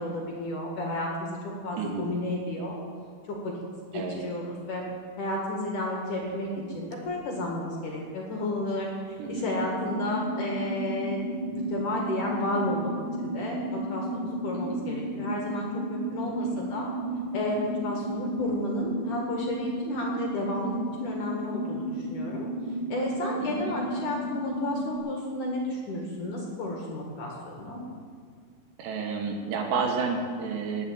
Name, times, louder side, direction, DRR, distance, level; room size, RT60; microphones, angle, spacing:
voice 1, 0.0-2.8 3.3-3.5 3.9-4.9 5.2-12.9 13.2-16.9 17.3-27.8, left 1 dB, 55° left, -1 dB, 2.7 m, -32 dB
sound 1, 9.3-25.0, right 1 dB, 35° right, 2.6 m, -33 dB
voice 2, 28.8-30.9, right 5 dB, 70° right, 2 dB, 3.4 m, -31 dB
19.5 x 7.5 x 8.6 m, 2.1 s
omnidirectional pair, 5.4 m